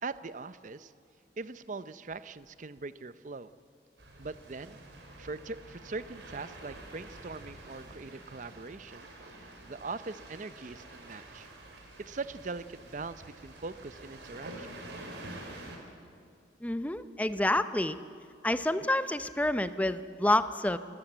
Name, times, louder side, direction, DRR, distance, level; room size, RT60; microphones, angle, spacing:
voice 1, 0.0-0.9 1.4-3.5 4.2-4.8 5.2-9.1 9.4-11.5 12.0-14.8, right 3 dB, 45° right, 14 dB, 0.6 m, -41 dB
sound 1, 4.0-15.8, right 1 dB, 75° right, 3.9 m, -48 dB
voice 2, 16.6-18.0 18.4-20.8, left 1 dB, 10° left, 12 dB, 0.6 m, -28 dB
26.0 x 15.0 x 8.0 m, 2.3 s
head